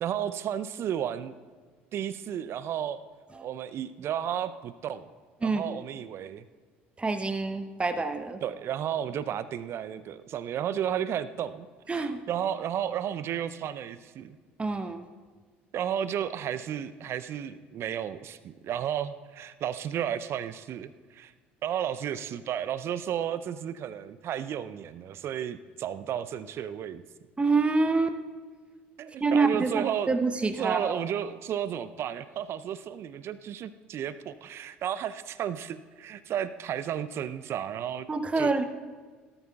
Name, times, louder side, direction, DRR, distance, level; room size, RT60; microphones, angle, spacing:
voice 1, 0.0-1.4 1.9-3.0 3.4-5.1 5.4-6.4 8.4-14.4 15.7-21.3 21.6-27.0 29.0-30.1 30.6-38.1 38.4-38.5, right 9 dB, 45° right, 14 dB, 0.5 m, -33 dB
voice 2, 5.4-5.8 7.0-8.4 11.9-12.2 14.6-15.0 27.4-28.2 29.2-31.0 38.1-38.6, right 3 dB, 20° right, 9 dB, 0.9 m, -26 dB
17.5 x 13.0 x 2.3 m, 1.5 s
figure-of-eight pair, 60°, 6 cm